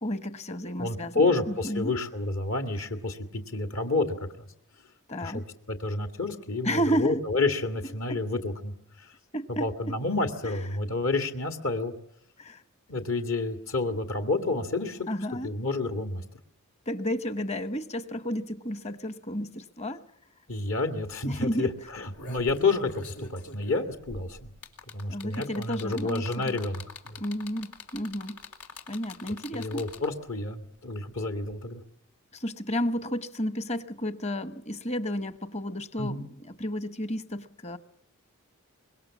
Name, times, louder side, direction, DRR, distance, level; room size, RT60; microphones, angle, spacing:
voice 1, 0.0-1.9 5.1-5.4 6.6-7.2 8.1-8.2 9.3-9.7 10.4-10.8 12.4-12.6 15.1-15.5 16.9-20.0 21.2-21.7 25.1-26.6 27.2-28.4 28.9-29.9 32.3-37.8, equal, 30° left, 1.1 m, -32 dB
voice 2, 0.8-4.1 5.2-5.4 5.7-8.7 9.6-11.9 12.9-15.0 15.4-16.2 20.5-24.5 24.9-27.2 29.5-31.8 36.0-36.2, left 3 dB, 65° left, 2.1 m, -29 dB
sound 1, 20.7-20.8 21.1-21.3 21.9-30.3 31.5-31.6, left 3 dB, 90° left, 3.8 m, -44 dB
25.0 x 21.5 x 7.3 m
head